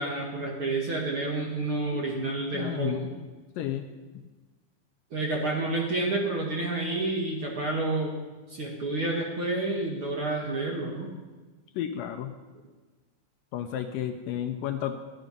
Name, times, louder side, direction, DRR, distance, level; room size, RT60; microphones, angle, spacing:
voice 1, 0.0-3.1 5.1-8.1 8.5-11.1, right 2 dB, 50° right, -1 dB, 1.6 m, -29 dB
voice 2, 2.5-3.1 3.6-3.9 11.8-12.3 13.5-14.9, left 10 dB, 80° left, 7 dB, 2.0 m, -32 dB
14.5 x 10.5 x 5.3 m, 1.3 s
omnidirectional pair, 4.5 m